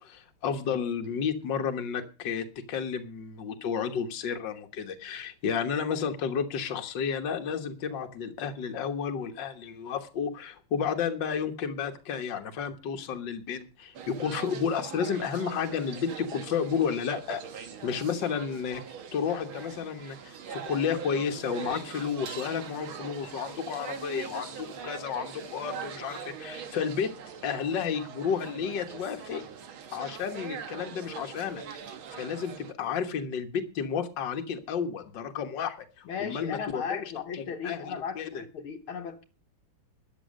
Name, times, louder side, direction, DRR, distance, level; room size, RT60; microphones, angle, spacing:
voice 1, 0.0-18.8 19.1-27.1 27.4-29.4 29.9-31.6 32.1-37.0 37.3-38.4, left 7 dB, 60° left, 2.0 m, -32 dB
sound 1, 13.9-32.7, right 7 dB, 70° right, 2.2 m, -42 dB
voice 2, 36.1-39.2, left 6 dB, 75° left, 2.1 m, -36 dB
13.0 x 9.8 x 6.5 m
omnidirectional pair, 2.4 m